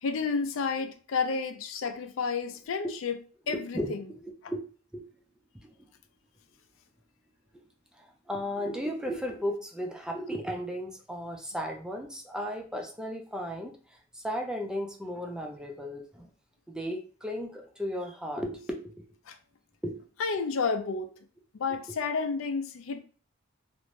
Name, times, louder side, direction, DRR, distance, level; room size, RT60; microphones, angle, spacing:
voice 1, 0.0-3.2 3.5-3.8 19.3-19.4 20.2-21.1 21.5-23.0, left 5 dB, 90° left, 0.4 m, -30 dB
voice 2, 3.5-4.6 4.9-5.0 5.5-5.7 7.9-16.3 16.7-19.1 19.8-20.0 21.7-21.8, equal, 5° right, 0.4 m, -35 dB
2.5 x 2.1 x 3.1 m
head